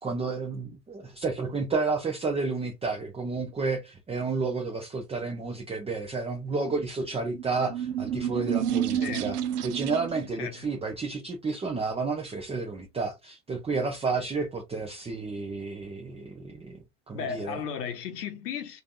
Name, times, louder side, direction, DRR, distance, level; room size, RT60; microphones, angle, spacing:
voice 1, 0.0-9.4 9.6-16.8 17.1-17.6, right 4 dB, 15° right, 0.6 m, -31 dB
sound 1, 7.3-10.3, right 10 dB, 75° right, 0.6 m, -30 dB
voice 2, 8.9-9.3 10.4-10.8 17.1-18.8, left 7 dB, 75° left, 0.8 m, -35 dB
3.2 x 2.6 x 2.5 m
hypercardioid pair, 75°, 47 cm